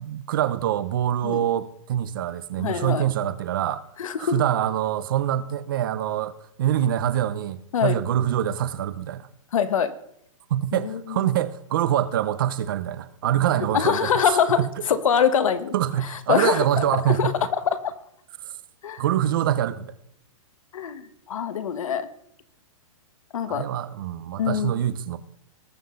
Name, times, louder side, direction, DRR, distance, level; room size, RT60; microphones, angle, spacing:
voice 1, 0.0-3.8 4.2-9.3 10.5-14.8 15.7-17.4 18.4-18.5 19.0-19.9 23.5-25.2, right 11 dB, 40° right, 0.7 m, -25 dB
voice 2, 2.6-3.0 4.0-4.4 7.7-8.0 9.5-9.9 10.7-11.2 13.7-14.6 14.9-15.7 16.3-17.3 17.7-17.9 18.8-19.0 20.7-22.1 23.3-23.6 24.4-24.7, left 8 dB, 70° left, 1.4 m, -24 dB
20.0 x 7.7 x 3.9 m
hypercardioid pair, 175°, 17 cm